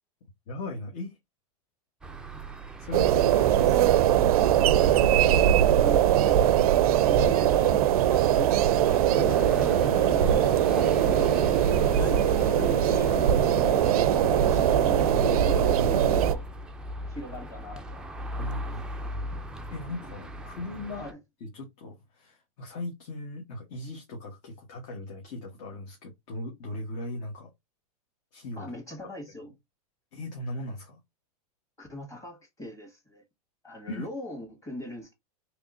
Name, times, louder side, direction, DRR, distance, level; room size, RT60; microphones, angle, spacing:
voice 1, 0.5-1.2 2.8-3.7 6.3-6.6 10.7-12.2 12.9-13.2 15.4-15.9 18.4-19.2 19.7-21.1 21.4-27.5 28.3-28.7 30.1-31.0 33.9-34.1, left 2 dB, 55° left, 1.2 m, -39 dB
sound 1, 2.0-21.1, right 1 dB, 5° right, 0.4 m, -41 dB
sound 2, 2.9-16.3, right 11 dB, 80° right, 0.4 m, -21 dB
voice 2, 3.5-3.8 4.8-5.0 5.4-6.5 7.0-10.7 12.0-13.1 13.5-16.4 17.1-19.1 20.9-21.2 28.6-29.5 31.8-33.2 33.6-35.1, left 1 dB, 15° left, 1.8 m, -41 dB
sound 3, 9.1-16.2, left 1 dB, 35° left, 1.5 m, -34 dB
3.5 x 3.0 x 2.5 m
hypercardioid pair, 125°, 19 cm